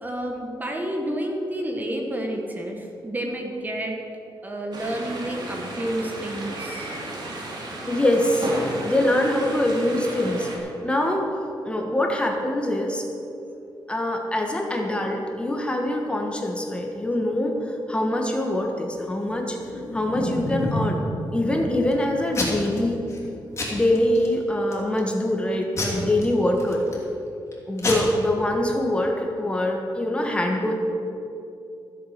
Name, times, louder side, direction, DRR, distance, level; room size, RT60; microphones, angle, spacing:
voice 1, 0.0-4.0 4.4-7.0, right 1 dB, 20° right, 2 dB, 1.4 m, -30 dB
sound 1, 4.7-10.6, right 2 dB, 60° right, 2.5 m, -33 dB
voice 2, 7.9-11.3 11.6-13.0 13.9-19.6 19.9-23.0 23.7-26.8 27.7-30.7, left 1 dB, 15° left, 1 dB, 1.4 m, -24 dB
Packing tape duct tape / Tearing, 19.6-20.9 21.4-21.9 22.3-22.8 23.1-23.3 23.6-24.3 24.7-25.1 25.8-27.0 27.5-27.6 27.8-27.9, left 1 dB, 35° left, 3.2 m, -28 dB
15.0 x 7.5 x 6.6 m, 2.8 s
cardioid pair, 120°, 8 cm